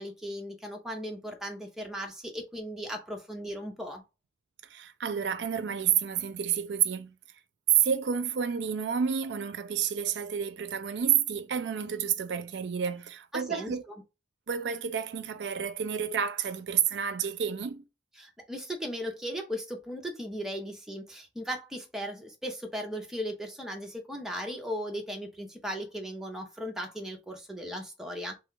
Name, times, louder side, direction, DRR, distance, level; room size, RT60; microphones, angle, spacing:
voice 1, 0.0-4.0 13.3-14.0 18.2-28.4, equal, 5° right, 0.7 m, -37 dB
voice 2, 4.7-7.1 7.8-13.8 14.5-17.8, right 8 dB, 75° right, 0.4 m, -30 dB
3.2 x 2.3 x 3.6 m
head